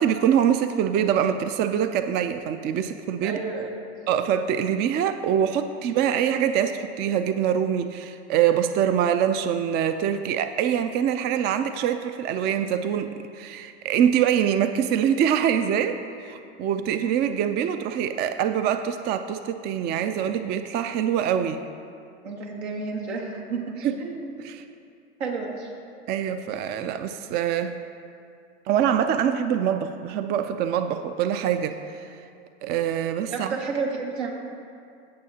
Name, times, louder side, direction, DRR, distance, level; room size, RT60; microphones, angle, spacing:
voice 1, 0.0-3.4 4.1-21.6 23.8-23.9 24.4-24.6 26.1-27.7 28.7-32.1 32.6-33.6, right 9 dB, 30° right, 9 dB, 0.4 m, -24 dB
voice 2, 3.2-3.8 22.2-24.3 25.2-25.7 33.3-34.3, right 4 dB, 85° right, 0 dB, 1.6 m, -31 dB
17.0 x 6.4 x 2.8 m, 2.4 s
hypercardioid pair, 105°, 32 cm